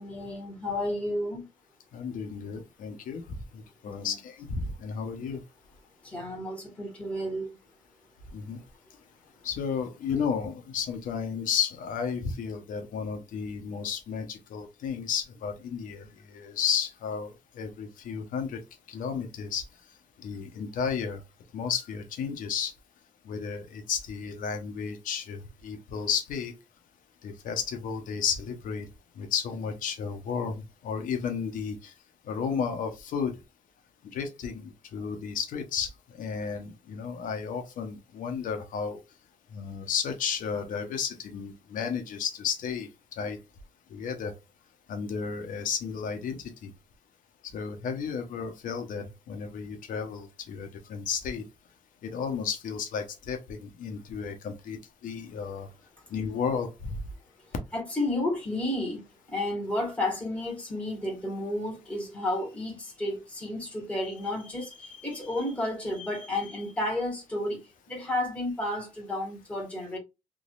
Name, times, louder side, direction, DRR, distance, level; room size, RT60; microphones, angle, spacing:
voice 1, 0.0-1.4 3.9-4.1 5.2-5.3 6.0-7.6 57.7-59.0 59.3-67.6 67.9-70.0, left 1 dB, 10° left, 1.9 m, -32 dB
voice 2, 1.9-3.2 3.8-5.4 8.3-8.6 9.4-17.3 17.6-18.6 18.9-19.6 20.2-21.2 21.5-22.7 23.3-26.5 27.2-28.9 29.2-30.5 30.8-31.7 32.3-33.3 34.1-35.9 36.2-39.0 39.5-42.9 43.2-43.4 43.9-44.3 44.9-46.7 47.5-51.4 52.0-54.8 55.0-55.7 56.1-57.0, left 6 dB, 75° left, 0.9 m, -33 dB
3.7 x 3.0 x 2.4 m
cardioid pair, 125°, 14 cm